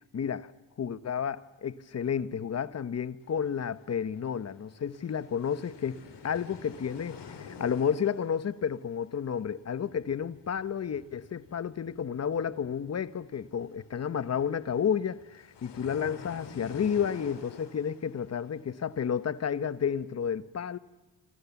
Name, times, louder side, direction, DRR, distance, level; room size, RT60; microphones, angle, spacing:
voice 1, 0.1-0.5 0.8-20.8, left 7 dB, 35° left, 1.0 m, -31 dB
sound 1, 3.2-19.9, left 6 dB, 65° left, 4.5 m, -50 dB
27.5 x 26.5 x 7.1 m
wide cardioid pair, 155°, 44 cm